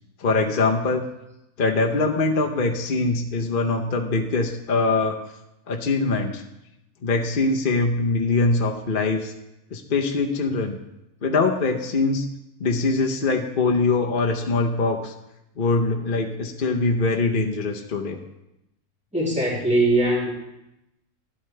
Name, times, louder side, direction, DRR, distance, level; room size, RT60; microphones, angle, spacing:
voice 1, 0.2-1.0 1.6-5.2 5.7-6.4 7.0-9.3 9.7-10.8 11.2-12.3 12.6-15.1 15.6-18.2, left 3 dB, 40° left, 2 dB, 0.8 m, -23 dB
voice 2, 19.1-20.3, right 1 dB, 5° right, -6 dB, 2.9 m, -21 dB
12.5 x 11.0 x 3.3 m, 0.89 s
omnidirectional pair, 1.6 m